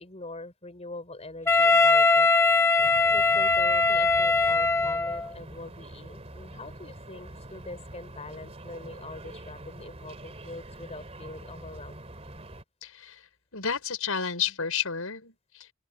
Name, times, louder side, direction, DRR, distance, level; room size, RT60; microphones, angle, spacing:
voice 1, 0.0-2.3 3.1-12.0, left 2 dB, 30° left, 5.5 m, -43 dB
Wind instrument woodwind instrument, 1.5-5.3, left 3 dB, 10° left, 1.0 m, -21 dB
sound 1, 2.8-12.6, right 1 dB, 30° right, 3.4 m, -45 dB
voice 2, 12.8-13.2 13.5-15.7, left 7 dB, 75° left, 5.7 m, -31 dB
open air
head